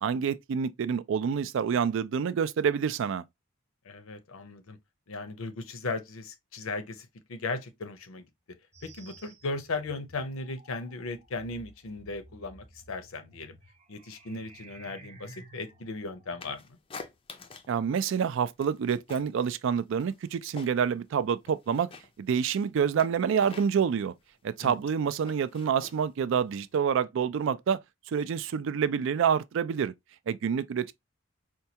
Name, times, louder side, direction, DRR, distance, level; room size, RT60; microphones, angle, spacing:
voice 1, 0.0-3.2 17.7-21.9 22.2-24.1 24.4-27.8 28.1-29.9 30.3-30.9, right 7 dB, 65° right, 0.3 m, -27 dB
voice 2, 3.9-4.8 5.1-8.3 8.8-13.5 13.9-16.8 24.6-24.8, left 3 dB, 75° left, 0.6 m, -37 dB
sound 1, 8.7-16.6, right 2 dB, 30° right, 0.7 m, -53 dB
sound 2, 16.4-17.8 18.1-19.4 19.7-21.0 21.3-26.7, left 4 dB, 25° left, 0.4 m, -48 dB
4.4 x 2.3 x 2.7 m
head